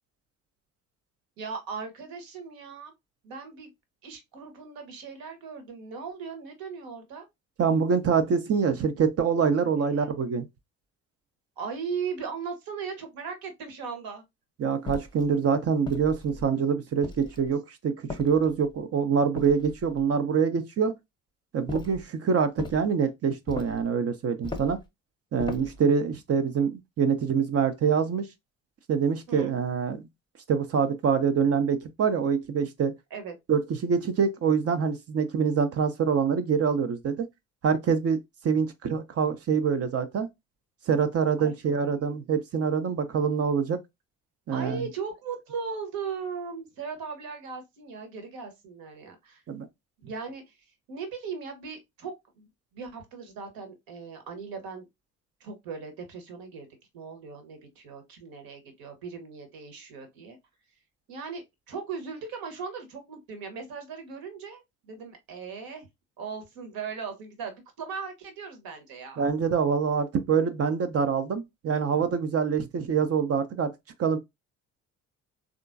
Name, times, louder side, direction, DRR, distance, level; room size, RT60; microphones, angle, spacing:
voice 1, 1.4-2.9 3.2-3.7 4.0-7.3 9.8-10.1 11.6-14.2 17.0-17.3 29.3-29.5 33.1-33.4 41.4-41.5 41.8-42.2 44.5-49.4 50.0-50.6 50.9-54.9 55.4-56.7 56.9-60.4 61.1-65.9 66.2-69.3, right 5 dB, 60° right, 1.1 m, -38 dB
voice 2, 7.6-10.5 14.6-21.0 21.5-24.8 25.3-28.3 28.9-30.1 30.5-32.9 33.5-37.2 37.6-38.2 38.4-40.3 40.9-43.8 44.5-44.9 49.5-49.7 69.2-73.7 74.0-74.2, right 6 dB, 35° right, 0.6 m, -25 dB
sound 1, 14.9-15.3 15.9-16.5 17.0-17.5 18.1-18.7 19.4-20.0 21.7-22.1 22.6-22.9 23.5-23.9 24.4-24.8 25.4-25.8, left 3 dB, 10° left, 0.8 m, -38 dB
3.6 x 2.4 x 2.5 m
figure-of-eight pair, 45°, 40 cm